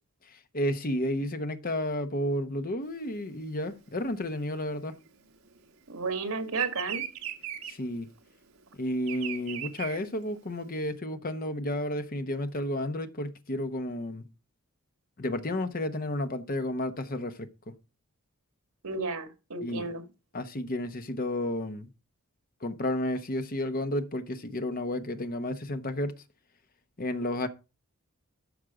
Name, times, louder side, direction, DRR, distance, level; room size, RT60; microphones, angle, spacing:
voice 1, 0.2-5.0 7.7-8.1 8.7-14.2 15.2-17.7 19.6-19.8 20.3-21.9 22.6-26.2 27.0-27.5, left 1 dB, 40° left, 1.0 m, -32 dB
Bird vocalization bird call bird song, 2.9-5.8 6.1-10.8, right 11 dB, 70° right, 1.6 m, -39 dB
voice 2, 5.9-7.0 18.8-20.0, right 4 dB, 85° right, 1.8 m, -32 dB
13.0 x 5.3 x 4.9 m
head